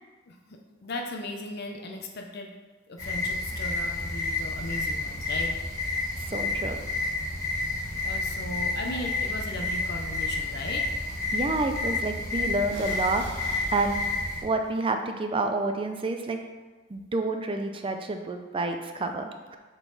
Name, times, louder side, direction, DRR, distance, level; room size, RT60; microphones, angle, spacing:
voice 1, 0.3-2.5 2.9-5.5 8.0-10.9, left 2 dB, 55° left, 2 dB, 0.6 m, -37 dB
sound 1, 3.0-14.4, left 2 dB, 15° left, 1.5 m, -30 dB
voice 2, 6.3-6.8 11.3-13.2 13.7-14.0 14.4-16.4 16.9-19.6, right 2 dB, 25° right, 6 dB, 0.4 m, -29 dB
sound 2, 12.7-14.7, right 2 dB, 60° right, 1.2 m, -46 dB
7.2 x 3.9 x 4.0 m, 1.3 s
head